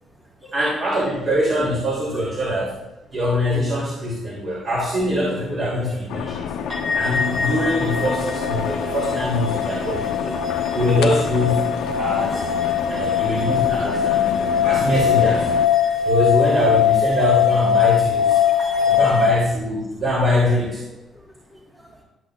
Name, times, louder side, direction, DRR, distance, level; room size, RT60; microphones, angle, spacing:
voice 1, 0.5-2.7 3.1-6.5 6.9-10.3 10.7-11.7 12.0-12.4 12.9-14.4 14.6-15.5 16.0-18.4 18.9-20.8, left 1 dB, 55° right, -6 dB, 2.9 m, -23 dB
sound 1, 6.1-15.7, left 7 dB, 90° left, 0.5 m, -29 dB
voice 2, 6.2-6.6 8.6-8.9 9.9-10.0 10.3-10.7 12.7-12.8 13.3-13.4 13.9-14.3 15.8-16.1 18.4-19.0 21.1-21.9, equal, 5° right, -2 dB, 1.7 m, -47 dB
sound 2, 6.7-19.3, left 8 dB, 30° right, 2.8 m, -21 dB
12.5 x 6.0 x 2.5 m, 1.0 s
cardioid pair, 90°, 0 cm